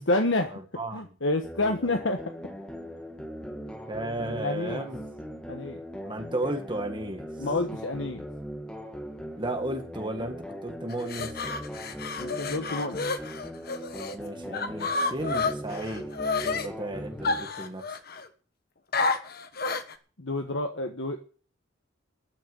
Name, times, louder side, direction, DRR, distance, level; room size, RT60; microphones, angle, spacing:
voice 1, 0.0-0.6 0.9-2.2 4.4-4.9 5.5-5.8 7.4-8.3 12.2-13.0 20.2-21.2, left 2 dB, 70° left, 5 dB, 1.4 m, -28 dB
voice 2, 0.5-1.0 3.9-5.0 6.0-7.3 9.4-11.5 14.1-16.1 16.4-18.0, right 1 dB, 25° right, 5 dB, 1.9 m, -34 dB
sound 1, 1.4-17.4, equal, 5° left, 1.8 m, -40 dB
sound 2, 10.9-14.2 14.5-16.7 17.2-18.3 18.9-19.9, left 4 dB, 50° left, 1.4 m, -30 dB
13.5 x 6.5 x 9.6 m, 0.39 s
head